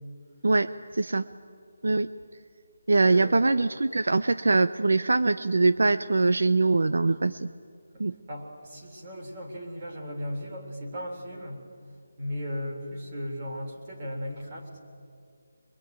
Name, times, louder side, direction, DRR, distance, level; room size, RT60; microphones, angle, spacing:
voice 1, 0.4-1.2 1.8-2.1 2.9-7.5 8.0-8.1, right 3 dB, 65° right, 13 dB, 0.7 m, -23 dB
voice 2, 3.1-3.5 7.1-7.2 7.9-8.0 8.3-11.6 12.2-14.8, equal, 20° right, -1 dB, 3.6 m, -36 dB
26.0 x 23.0 x 9.1 m, 2.2 s
figure-of-eight pair, 175°, 0 cm